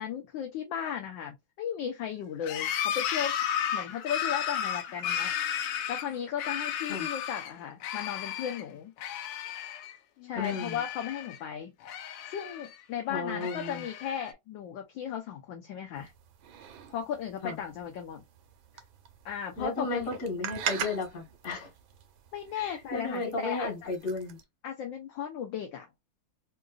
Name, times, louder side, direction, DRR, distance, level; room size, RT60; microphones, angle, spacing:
voice 1, 0.0-3.4 3.7-5.3 5.9-8.9 10.2-11.7 12.3-16.1 16.9-18.2 19.2-20.1 22.3-23.9 24.6-25.9, left 8 dB, 70° left, 1.3 m, -36 dB
sound 1, 2.4-7.5 7.8-8.6 9.0-10.0 10.2-11.4 11.8-12.8 13.3-14.3, left 9 dB, 85° left, 1.5 m, -34 dB
voice 2, 10.4-10.8 13.1-13.8 17.4-17.6 19.6-21.7 22.6-24.4, left 3 dB, 45° left, 1.8 m, -34 dB
sound 2, 15.9-24.4, right 8 dB, 75° right, 1.4 m, -42 dB
3.7 x 2.5 x 2.4 m
omnidirectional pair, 2.4 m